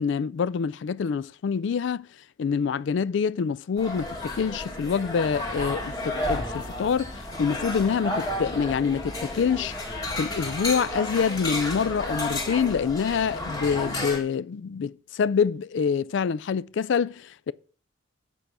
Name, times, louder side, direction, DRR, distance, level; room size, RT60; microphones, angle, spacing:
voice 1, 0.0-2.1 2.4-9.7 10.1-17.5, left 6 dB, 60° left, 0.3 m, -26 dB
sound 1, 3.8-14.2, left 1 dB, 20° left, 1.7 m, -32 dB
8.2 x 4.9 x 6.7 m
head